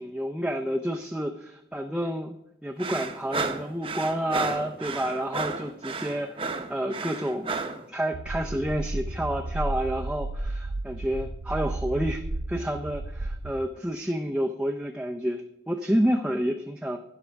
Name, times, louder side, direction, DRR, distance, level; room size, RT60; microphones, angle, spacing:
voice 1, 0.0-2.3 2.6-7.5 7.9-17.0, equal, 5° right, 2 dB, 0.5 m, -29 dB
sound 1, 2.8-7.8, right 4 dB, 30° right, 0.8 m, -32 dB
sound 2, 8.1-13.5, right 2 dB, 55° right, 0.5 m, -33 dB
12.0 x 11.0 x 3.5 m, 0.82 s
head